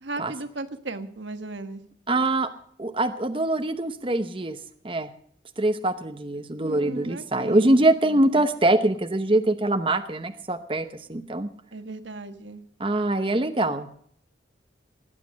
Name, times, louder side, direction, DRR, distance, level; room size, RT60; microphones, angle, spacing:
voice 1, 0.0-1.8 6.6-7.7 11.7-12.6, right 2 dB, 80° right, 8 dB, 1.3 m, -36 dB
voice 2, 2.1-2.5 2.8-4.6 4.8-5.1 5.6-11.5 12.8-14.0, right 1 dB, 30° right, 7 dB, 0.8 m, -23 dB
21.0 x 8.3 x 6.4 m, 0.64 s
head